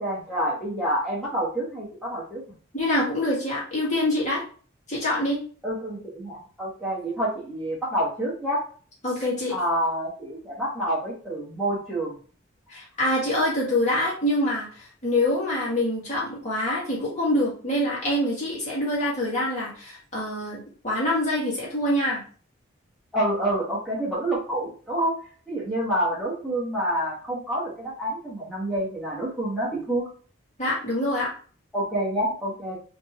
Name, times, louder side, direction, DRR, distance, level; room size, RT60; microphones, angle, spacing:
voice 1, 0.0-2.4 5.6-8.6 9.5-12.2 23.1-25.1 25.5-30.1 31.7-32.7, right 1 dB, ahead, -10 dB, 1.2 m, -28 dB
voice 2, 2.7-4.4 4.9-5.4 9.0-9.5 12.7-22.2 30.6-31.3, left 1 dB, 35° left, -6 dB, 2.1 m, -25 dB
4.3 x 3.0 x 3.1 m, 0.42 s
head